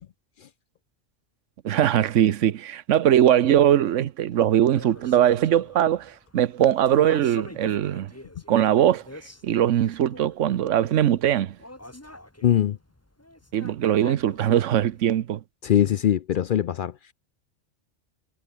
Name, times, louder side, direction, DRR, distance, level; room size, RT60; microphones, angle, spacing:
voice 1, 1.6-8.1 8.5-9.0 9.4-11.6 13.5-15.4, right 11 dB, 85° right, 1.1 m, -21 dB
sound 1, 4.6-15.2, left 1 dB, 10° left, 1.9 m, -45 dB
voice 2, 12.4-12.8 15.6-16.9, left 10 dB, 60° left, 0.6 m, -21 dB
omnidirectional pair, 1.2 m